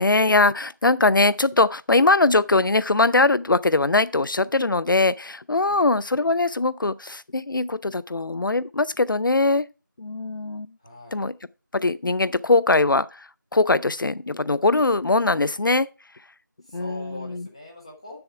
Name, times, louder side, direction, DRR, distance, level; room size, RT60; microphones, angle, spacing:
voice 1, 0.0-9.7 10.0-10.7 11.1-11.3 11.7-15.9 16.7-17.5, left 3 dB, 75° left, 0.4 m, -21 dB
voice 2, 10.8-11.2 16.6-18.2, left 2 dB, 15° left, 1.2 m, -41 dB
7.8 x 7.0 x 4.6 m
figure-of-eight pair, 175°, 11 cm